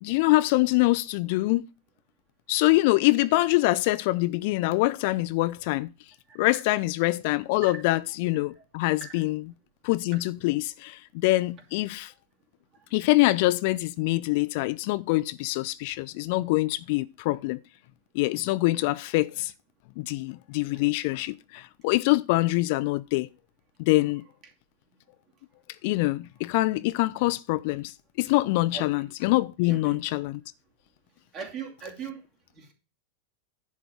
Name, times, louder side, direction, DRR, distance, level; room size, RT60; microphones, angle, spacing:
voice 1, 0.0-1.7 2.5-5.9 6.4-9.4 9.8-12.1 12.9-17.6 18.1-19.5 20.0-23.3 23.8-24.2 25.8-30.4, left 20 dB, 50° left, 0.4 m, -25 dB
voice 2, 29.6-30.0 31.3-32.2 32.5-32.7, right 7 dB, 35° right, 2.6 m, -39 dB
10.5 x 3.6 x 7.0 m
figure-of-eight pair, 90°, 0 cm